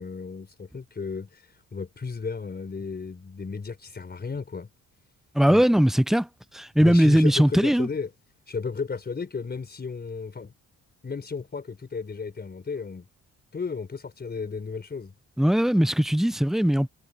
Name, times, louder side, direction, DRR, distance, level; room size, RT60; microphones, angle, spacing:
voice 1, 0.0-4.7 5.5-5.6 6.8-8.1 8.5-10.5 11.0-13.1 13.5-15.1, left 5 dB, 35° left, 4.4 m, -34 dB
voice 2, 5.3-6.3 6.5-7.9 15.4-16.9, equal, ahead, 0.7 m, -20 dB
cardioid pair, 90°, 30 cm